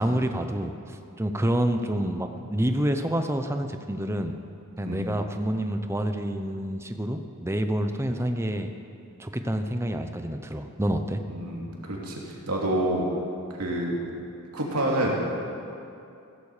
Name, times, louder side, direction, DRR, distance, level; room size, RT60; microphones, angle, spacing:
voice 1, 0.0-4.3 4.8-8.7 9.2-11.2, right 1 dB, 10° right, 7 dB, 0.7 m, -28 dB
voice 2, 11.3-13.1 13.6-14.0 14.5-15.1, right 1 dB, 90° right, -2 dB, 2.9 m, -28 dB
15.5 x 14.5 x 5.0 m, 2.6 s
head